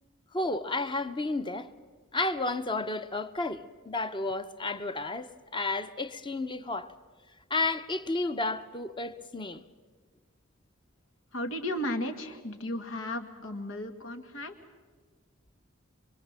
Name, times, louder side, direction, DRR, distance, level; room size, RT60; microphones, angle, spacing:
voice 1, 0.3-1.7 2.1-6.9 7.5-9.6, left 2 dB, 25° left, 0.8 m, -32 dB
voice 2, 11.3-14.5, left 1 dB, 85° left, 2.0 m, -34 dB
24.5 x 24.5 x 7.5 m
head